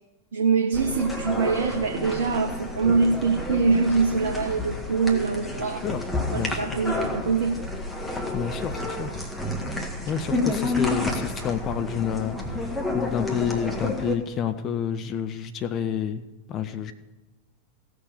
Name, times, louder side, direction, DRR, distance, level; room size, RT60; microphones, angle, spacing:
voice 1, 0.3-5.9 6.3-7.6 10.3-10.6, right 4 dB, 60° right, 3 dB, 0.9 m, -24 dB
sound 1, 0.7-14.2, left 2 dB, 5° left, 1.9 m, -30 dB
voice 2, 6.3-6.8 8.3-9.1 10.1-12.6 12.9-16.2 16.5-16.9, left 8 dB, 30° left, 10 dB, 0.8 m, -29 dB
16.0 x 6.6 x 6.9 m, 1.1 s
figure-of-eight pair, 90°, 0 cm